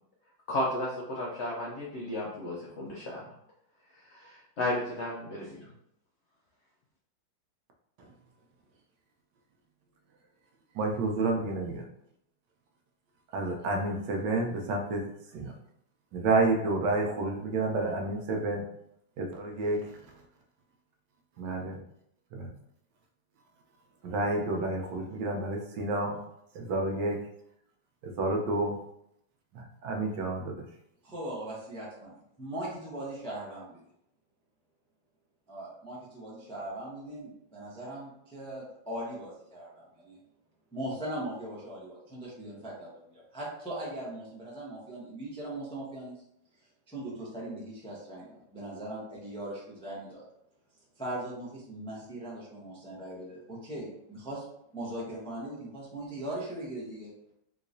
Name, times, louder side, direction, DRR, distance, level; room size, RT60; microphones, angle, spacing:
voice 1, 0.5-3.2 4.1-5.7, left 1 dB, 75° left, -4 dB, 0.6 m, -33 dB
voice 2, 10.7-11.8 13.3-15.5 16.1-18.6 19.2-20.0 21.4-21.8 22.3-22.5 24.0-26.2 26.5-27.2 28.0-28.7 29.5-30.6, right 2 dB, 75° right, 2 dB, 1.2 m, -30 dB
voice 3, 31.0-33.8 35.5-40.2 40.7-46.2 46.9-50.2 51.0-54.4 54.7-57.1, right 1 dB, 5° left, -6 dB, 0.4 m, -39 dB
3.7 x 2.9 x 2.6 m, 0.74 s
omnidirectional pair, 2.0 m